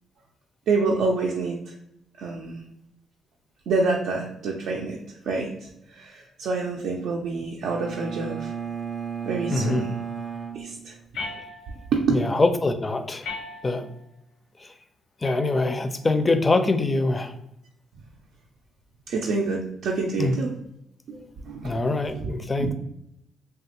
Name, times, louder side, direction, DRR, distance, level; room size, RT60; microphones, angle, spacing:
voice 1, 0.7-1.7 2.2-2.6 3.7-5.0 5.3-8.5 9.2-9.9 10.5-10.9 11.9-12.2 19.1-20.5 21.1-21.8 22.2-22.3 22.6-22.7, right 4 dB, 75° right, -1 dB, 0.4 m, -27 dB
Bowed string instrument, 7.6-11.5, right 7 dB, 20° right, 0.6 m, -34 dB
voice 2, 9.5-9.9 11.3-11.4 12.1-13.3 13.6-13.9 14.6-14.7 15.2-17.4 20.2-20.4 21.6-22.7, left 2 dB, 25° left, 9 dB, 0.4 m, -24 dB
sound 1, 11.1-12.0 13.2-14.0 15.2-16.0, left 3 dB, 80° left, 0.7 m, -38 dB
3.2 x 2.3 x 2.8 m, 0.79 s
cardioid pair, 80°, 0 cm